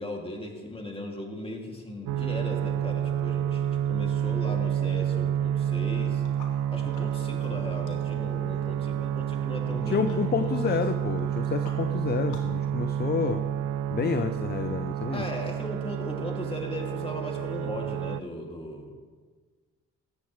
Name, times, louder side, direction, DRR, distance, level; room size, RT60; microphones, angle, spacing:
voice 1, 0.0-6.2 6.7-10.8 15.1-18.9, left 1 dB, 20° left, 1 dB, 2.6 m, -37 dB
sound 1, 2.1-18.2, right 10 dB, 75° right, 0.4 m, -29 dB
sound 2, 6.2-12.6, left 4 dB, 85° left, 2.2 m, -53 dB
voice 2, 9.7-13.4 13.9-15.3, left 6 dB, 35° left, 9 dB, 0.7 m, -29 dB
18.5 x 13.5 x 3.3 m, 1.5 s
cardioid pair, 90°, 30 cm